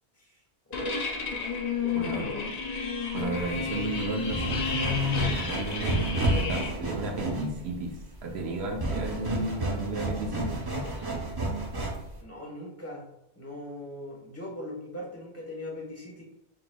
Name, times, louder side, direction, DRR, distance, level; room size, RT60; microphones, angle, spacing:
sound 1, 0.7-6.7, left 5 dB, 50° left, 0.5 m, -32 dB
voice 1, 0.7-1.1 1.8-2.4 12.2-16.2, left 1 dB, 15° left, -2 dB, 1.0 m, -40 dB
voice 2, 1.9-2.3 3.1-8.0 8.2-10.9, equal, 75° right, 1 dB, 1.0 m, -33 dB
sound 2, 3.2-12.2, right 2 dB, 30° right, 0.5 m, -31 dB
5.8 x 2.9 x 2.2 m, 0.84 s
omnidirectional pair, 1.1 m